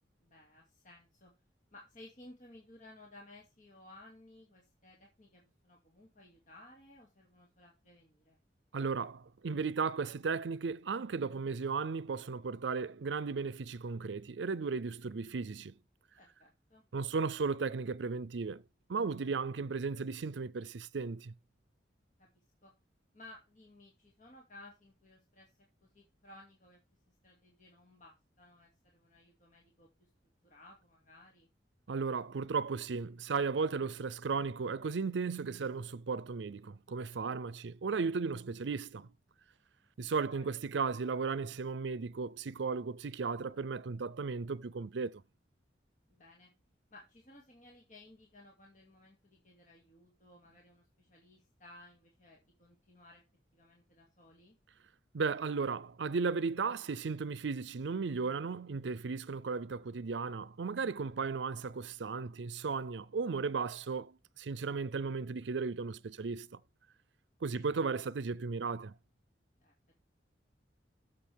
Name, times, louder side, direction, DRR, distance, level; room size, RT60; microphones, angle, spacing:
voice 1, 0.2-1.3 1.7-8.4 16.2-16.8 22.2-22.3 22.6-22.7 23.1-25.5 25.8-26.8 27.1-30.1 30.4-31.5 40.3-40.5 46.1-46.5 46.9-53.2 53.5-54.6 67.5-67.6 69.6-69.7, left 2 dB, 45° left, 2.3 m, -58 dB
voice 2, 8.7-15.7 16.9-18.6 18.9-21.3 31.9-39.1 40.0-45.2 55.1-66.6 67.4-68.9, right 4 dB, 80° right, 0.5 m, -35 dB
13.0 x 6.9 x 3.5 m
head